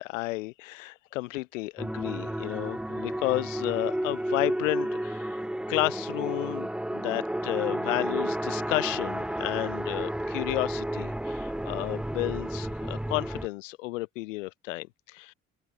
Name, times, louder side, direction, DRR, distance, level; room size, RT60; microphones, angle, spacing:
voice 1, 0.0-5.4 5.7-15.3, left 21 dB, 70° left, 1.9 m, -32 dB
sound 1, 1.8-13.5, right 1 dB, ahead, 0.8 m, -32 dB
figure-of-eight pair, 50°, 40 cm